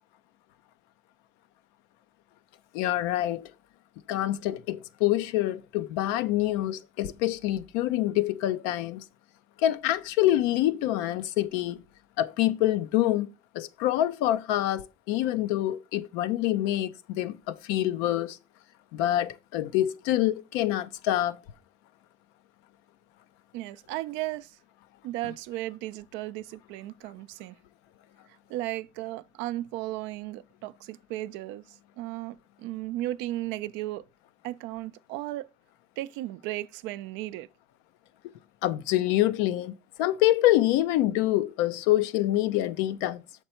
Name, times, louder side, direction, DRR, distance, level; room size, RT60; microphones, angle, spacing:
voice 1, 2.7-3.5 4.1-9.0 9.6-11.8 12.2-13.3 13.5-18.4 18.9-21.4 38.6-43.2, left 14 dB, 85° left, 0.5 m, -26 dB
voice 2, 23.5-24.6 25.0-27.6 28.5-34.0 34.4-35.5 36.0-37.5, right 16 dB, 75° right, 0.4 m, -35 dB
6.8 x 4.5 x 4.3 m
supercardioid pair, 70°, 19 cm